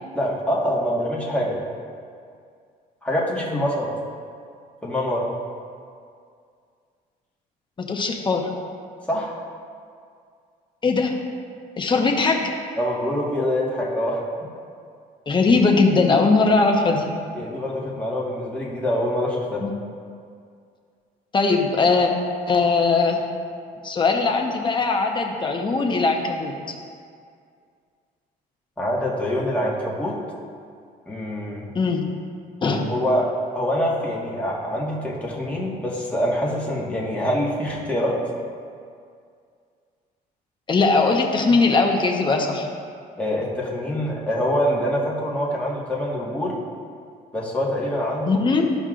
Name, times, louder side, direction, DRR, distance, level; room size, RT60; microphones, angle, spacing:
voice 1, 0.1-1.6 3.0-3.9 4.8-5.3 9.1-9.4 12.8-14.2 17.3-19.7 28.8-30.2 31.1-31.7 32.9-38.2 43.2-46.6 47.3-48.4, equal, 10° left, -5 dB, 1.7 m, -25 dB
voice 2, 7.8-8.5 10.8-11.2 11.8-12.5 15.3-17.1 19.6-19.7 21.3-22.1 22.5-23.2 23.8-26.7 31.7-32.1 32.6-32.9 40.7-42.7 48.3-48.7, left 4 dB, 30° left, 2 dB, 0.9 m, -20 dB
12.5 x 5.3 x 2.5 m, 2.2 s
cardioid pair, 110°, 17 cm